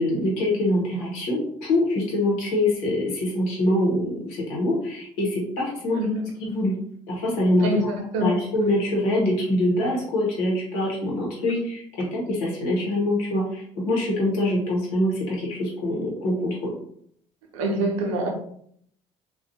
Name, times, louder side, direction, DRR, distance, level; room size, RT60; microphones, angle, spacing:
voice 1, 0.0-6.0 6.4-6.7 7.1-7.9 8.2-16.7, left 1 dB, 75° left, 1.0 m, -24 dB
voice 2, 5.9-6.2 7.6-8.4 17.5-18.3, right 1 dB, 80° right, 0.6 m, -25 dB
2.4 x 2.3 x 2.6 m
hypercardioid pair, 60°, 17 cm